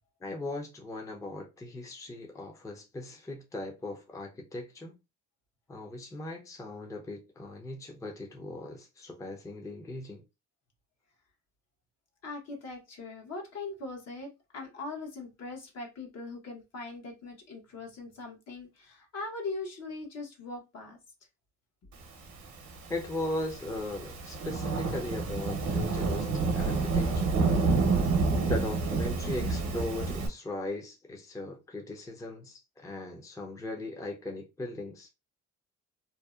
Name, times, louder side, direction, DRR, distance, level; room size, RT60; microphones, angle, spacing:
voice 1, 0.2-5.0 5.7-10.2 22.9-26.3 26.5-27.4 28.0-28.1 28.4-35.1, left 2 dB, 10° left, 0.5 m, -38 dB
voice 2, 12.2-21.0, left 3 dB, 60° left, 0.9 m, -41 dB
Thunderstorm / Rain, 22.6-30.3, right 4 dB, 70° right, 0.8 m, -29 dB
2.6 x 2.0 x 2.3 m
cardioid pair, 90°, 30 cm